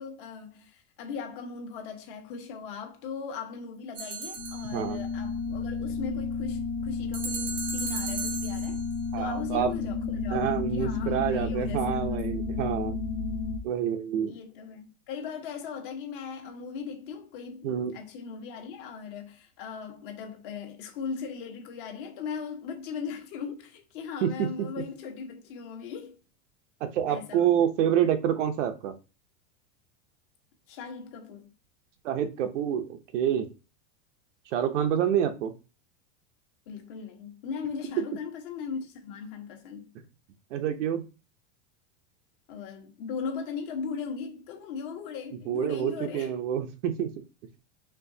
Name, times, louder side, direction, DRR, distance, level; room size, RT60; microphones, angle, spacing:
voice 1, 0.0-8.8 9.2-12.2 14.3-26.2 27.1-27.5 30.7-31.5 36.7-39.9 42.5-46.3, left 6 dB, 45° left, 1.1 m, -38 dB
sound 1, 3.9-5.0 7.1-8.9, right 5 dB, 20° right, 0.5 m, -36 dB
sound 2, 4.4-13.6, left 4 dB, 85° left, 0.8 m, -32 dB
voice 2, 9.1-9.7 10.3-13.0 13.6-14.3 17.6-17.9 24.2-24.5 26.8-28.9 32.0-33.5 34.5-35.5 40.5-41.0 45.5-47.1, right 9 dB, 70° right, 0.8 m, -27 dB
4.5 x 3.6 x 2.7 m
supercardioid pair, 180°, 38 cm